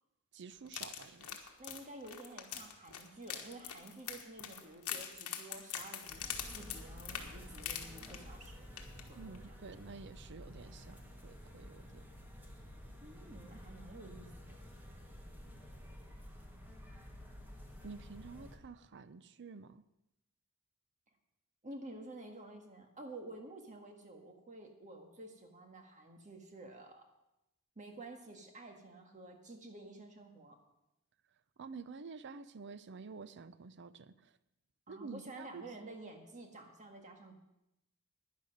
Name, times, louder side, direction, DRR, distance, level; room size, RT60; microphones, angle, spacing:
voice 1, 0.3-1.5 9.1-12.1 17.8-19.8 31.6-34.3 34.9-35.6, right 4 dB, 55° right, 0.6 m, -50 dB
sound 1, 0.7-8.5 8.8-9.0 9.3-9.4, left 9 dB, 70° left, 1.3 m, -43 dB
voice 2, 1.6-8.7 9.1-9.5 13.0-14.6 21.6-27.0 27.8-30.6 34.9-37.4, right 2 dB, 35° right, 1.7 m, -51 dB
sound 2, 6.1-18.6, equal, 10° right, 1.7 m, -51 dB
10.5 x 10.5 x 6.6 m
head